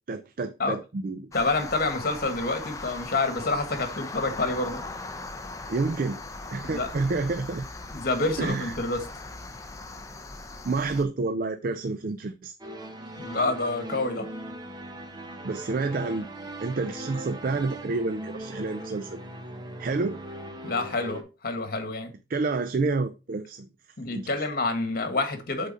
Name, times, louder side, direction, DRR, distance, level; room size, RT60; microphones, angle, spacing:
voice 1, 0.1-1.3 5.7-6.2 6.5-7.6 8.4-8.7 10.6-12.5 15.4-16.3 16.6-19.2 19.8-20.2 22.3-23.7 24.1-24.3, right 3 dB, 55° right, 0.4 m, -29 dB
voice 2, 1.3-4.8 6.6-6.9 7.9-9.0 13.2-14.3 20.6-22.1 24.0-25.7, left 2 dB, 55° left, 1.5 m, -28 dB
sound 1, 1.3-11.0, left 3 dB, 20° left, 0.7 m, -39 dB
sound 2, 12.6-21.2, right 1 dB, 25° right, 1.0 m, -39 dB
8.2 x 4.0 x 4.0 m
head